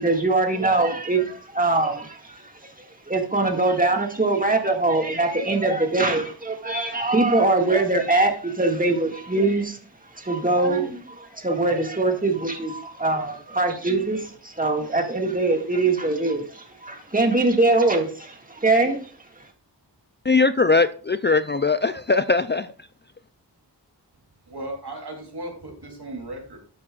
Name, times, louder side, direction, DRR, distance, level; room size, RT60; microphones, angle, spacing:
voice 1, 0.0-9.8 10.1-19.1 19.4-19.5, right 2 dB, 20° right, 2.0 m, -23 dB
voice 2, 20.3-22.7, left 4 dB, 25° left, 0.4 m, -20 dB
voice 3, 24.5-26.6, right 1 dB, 65° right, 3.3 m, -36 dB
13.0 x 8.4 x 2.4 m
wide cardioid pair, 60°, 42 cm